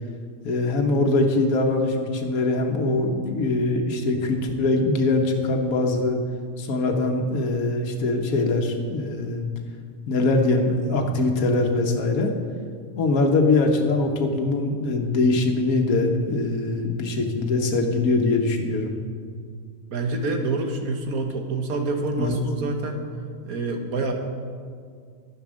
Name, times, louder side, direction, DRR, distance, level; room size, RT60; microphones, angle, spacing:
voice 1, 0.4-6.2 6.6-9.5 10.1-12.3 12.9-18.9 22.2-22.3, left 2 dB, 80° left, 2 dB, 1.5 m, -22 dB
voice 2, 19.9-23.1 23.4-24.1, right 3 dB, 90° right, 4 dB, 1.7 m, -27 dB
10.5 x 9.5 x 6.3 m, 2.1 s
omnidirectional pair, 1.5 m